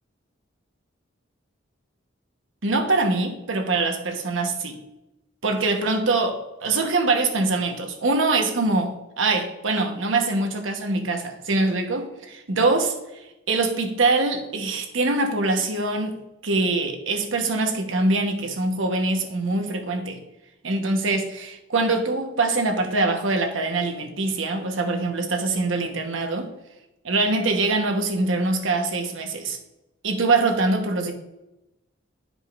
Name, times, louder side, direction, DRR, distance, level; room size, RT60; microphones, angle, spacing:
voice 1, 2.6-4.8 5.4-12.9 13.5-20.2 20.6-26.5 27.0-29.6 30.0-31.1, right 3 dB, 75° right, 4 dB, 1.1 m, -23 dB
11.5 x 5.1 x 2.5 m, 0.93 s
head